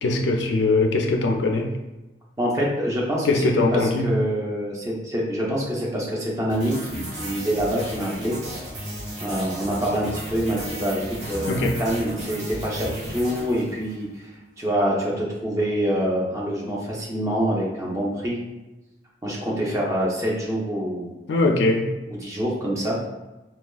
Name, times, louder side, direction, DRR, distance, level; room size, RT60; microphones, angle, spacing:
voice 1, 0.0-1.7 3.2-4.1 11.4-11.8 21.3-21.9, left 2 dB, 70° left, 2 dB, 0.3 m, -21 dB
voice 2, 2.4-3.4 3.7-8.3 9.2-14.3 14.6-18.4 19.2-21.1 22.2-23.0, equal, 15° right, -4 dB, 0.5 m, -26 dB
sound 1, 6.5-14.1, equal, 75° right, 1.3 m, -35 dB
3.3 x 2.2 x 2.3 m, 1.0 s
head